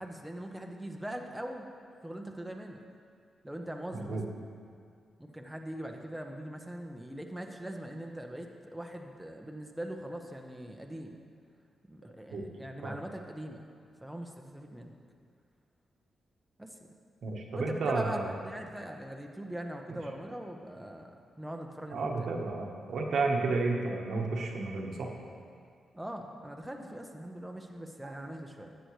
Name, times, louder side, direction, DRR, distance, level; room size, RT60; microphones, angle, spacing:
voice 1, 0.0-1.7 2.0-2.8 3.4-4.2 5.2-11.2 11.9-13.6 14.0-14.9 16.6-16.8 17.5-18.2 18.4-21.1 21.4-22.1 25.9-28.8, right 1 dB, 5° right, 2 dB, 0.8 m, -41 dB
voice 2, 17.2-18.3 19.9-20.0 21.9-25.1 28.0-28.1, right 3 dB, 70° right, 1 dB, 1.1 m, -32 dB
13.0 x 8.0 x 3.2 m, 2.3 s
cardioid pair, 80°, 0 cm